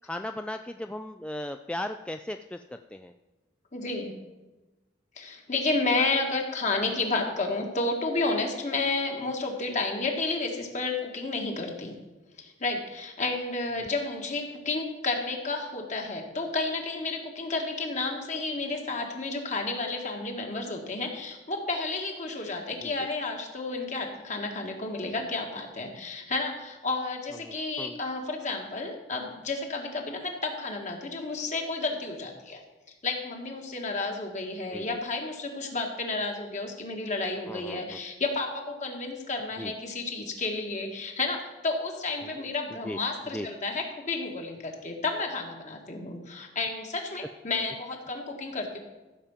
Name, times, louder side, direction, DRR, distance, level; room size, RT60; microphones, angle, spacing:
voice 1, 0.0-3.1 9.7-9.8 13.8-13.9 22.8-22.9 27.4-28.0 34.7-35.0 37.5-38.0 39.6-39.7 42.4-42.5 42.8-43.0 43.3-43.5, left 1 dB, 5° left, 7 dB, 0.3 m, -37 dB
voice 2, 3.7-4.1 5.2-11.9 12.4-32.6 33.0-48.8, left 3 dB, 40° left, 2 dB, 1.8 m, -31 dB
15.0 x 5.2 x 7.3 m, 1.1 s
head